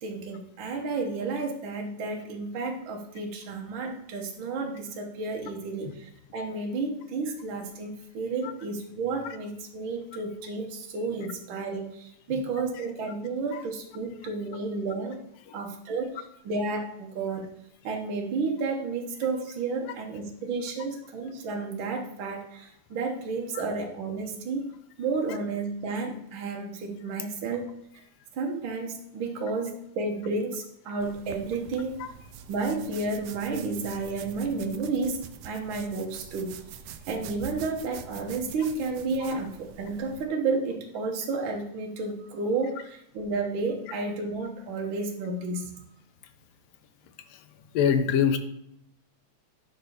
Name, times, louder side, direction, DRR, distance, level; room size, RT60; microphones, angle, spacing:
voice 1, 0.0-15.2 15.5-17.5 17.8-28.1 28.3-32.0 32.5-36.6 37.1-45.8, right 3 dB, 65° right, 1 dB, 1.3 m, -32 dB
sound 1, 31.0-40.3, right 8 dB, 85° right, 1.3 m, -45 dB
voice 2, 47.7-48.4, left 7 dB, 70° left, 8 dB, 1.7 m, -24 dB
10.5 x 3.9 x 6.5 m, 0.75 s
omnidirectional pair, 3.4 m